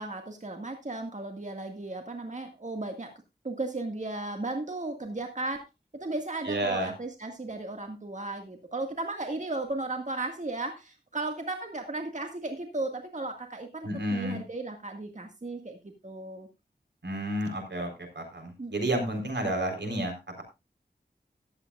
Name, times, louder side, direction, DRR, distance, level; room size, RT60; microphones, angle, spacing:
voice 1, 0.0-3.1 3.4-5.7 5.9-16.5 18.6-18.7, right 2 dB, 45° right, 4 dB, 1.9 m, -35 dB
voice 2, 6.5-6.9 13.8-14.4 17.0-20.4, right 1 dB, 80° right, 4 dB, 4.1 m, -31 dB
15.0 x 11.5 x 2.4 m, 0.25 s
wide cardioid pair, 55°, 18 cm